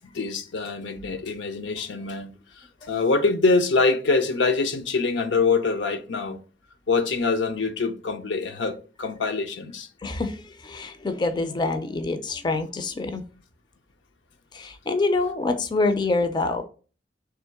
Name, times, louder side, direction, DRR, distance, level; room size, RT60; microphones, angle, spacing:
voice 1, 0.1-2.3 2.6-6.4 6.9-9.9, left 4 dB, 80° left, 0.6 m, -24 dB
voice 2, 10.0-13.2 14.5-16.6, left 3 dB, 25° left, 0.4 m, -26 dB
3.6 x 2.9 x 4.6 m
head